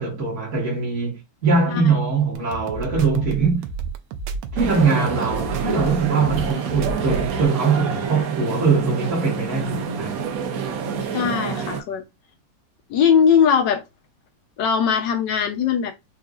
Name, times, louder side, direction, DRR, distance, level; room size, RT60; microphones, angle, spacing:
voice 1, 0.0-3.7 4.5-10.2, right 4 dB, 40° right, 1.6 m, -22 dB
sound 1, 2.3-7.5, right 6 dB, 90° right, 1.4 m, -30 dB
sound 2, 4.6-11.8, right 6 dB, 70° right, 0.8 m, -28 dB
voice 2, 11.1-12.0 12.9-13.8 14.6-15.9, left 7 dB, 70° left, 1.3 m, -19 dB
4.8 x 2.5 x 2.4 m
omnidirectional pair, 2.1 m